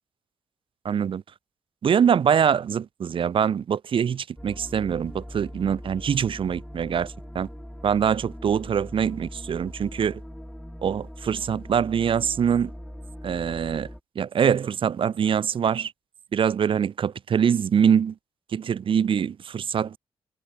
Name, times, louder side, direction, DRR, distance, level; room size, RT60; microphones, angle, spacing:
voice 1, 0.8-1.2 1.8-7.5 7.8-10.2 10.8-12.7 13.2-13.9 14.1-15.9 16.3-18.1 18.5-20.0, right 8 dB, 60° right, 0.9 m, -24 dB
sound 1, 4.4-14.0, equal, 5° left, 1.4 m, -41 dB
cardioid pair, 75°, 10 cm